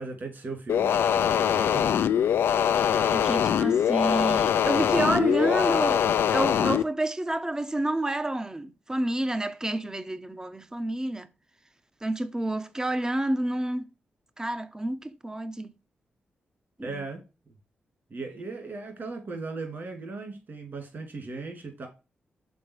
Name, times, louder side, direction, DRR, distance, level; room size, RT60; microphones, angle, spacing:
voice 1, 0.0-1.9 16.8-17.2 18.1-21.9, right 3 dB, 55° right, 2.8 m, -37 dB
sound 1, 0.7-6.8, left 9 dB, 85° left, 0.4 m, -23 dB
voice 2, 2.9-11.3 12.0-13.9 14.4-15.7 16.8-17.0, right 1 dB, 15° right, 0.6 m, -29 dB
6.3 x 3.9 x 4.8 m
cardioid pair, 65°, 4 cm